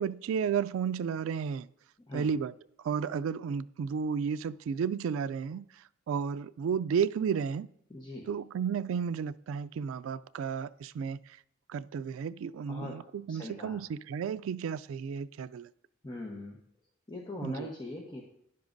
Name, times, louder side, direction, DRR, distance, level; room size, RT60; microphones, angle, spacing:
voice 1, 0.0-1.7 2.1-2.5 2.8-5.6 6.1-7.7 8.3-11.2 11.7-15.7 17.4-17.7, right 7 dB, 85° right, 0.3 m, -32 dB
voice 2, 7.9-8.3 12.7-12.9 13.3-13.8 16.0-16.6 17.1-18.2, left 1 dB, 20° left, 1.0 m, -40 dB
12.0 x 10.0 x 2.6 m
head